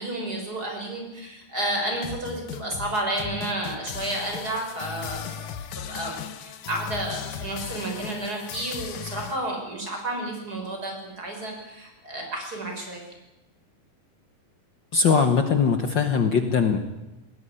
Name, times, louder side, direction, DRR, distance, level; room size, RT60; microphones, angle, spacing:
voice 1, 0.0-5.6 5.9-13.0, right 1 dB, 25° right, 1 dB, 6.2 m, -31 dB
sound 1, 1.9-9.4, left 8 dB, 70° left, 2.7 m, -37 dB
voice 2, 14.9-16.8, left 5 dB, 90° left, 8 dB, 1.0 m, -21 dB
20.0 x 18.5 x 10.0 m, 0.99 s
omnidirectional pair, 4.1 m